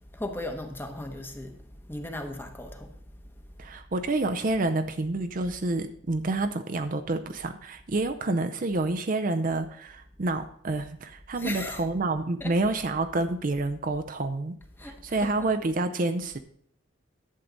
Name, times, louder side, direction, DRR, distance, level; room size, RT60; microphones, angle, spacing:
voice 1, 0.1-3.4 11.4-11.8 12.4-12.6 14.8-15.3, left 1 dB, 10° left, 1.0 m, -37 dB
voice 2, 3.6-14.6 14.8-16.4, right 2 dB, 45° right, 0.6 m, -28 dB
11.0 x 7.5 x 3.9 m
head